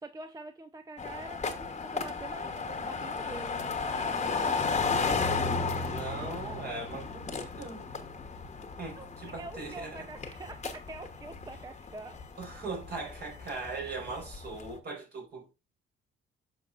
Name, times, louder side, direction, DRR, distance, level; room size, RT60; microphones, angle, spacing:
voice 1, 0.0-4.7 9.0-12.2, right 2 dB, 20° right, 0.6 m, -45 dB
sound 1, 1.0-14.8, left 4 dB, 35° left, 1.1 m, -34 dB
voice 2, 5.9-7.9 8.8-10.1 12.4-15.5, right 3 dB, 55° right, 4.8 m, -40 dB
9.3 x 6.1 x 2.5 m
cardioid pair, 90°, 20 cm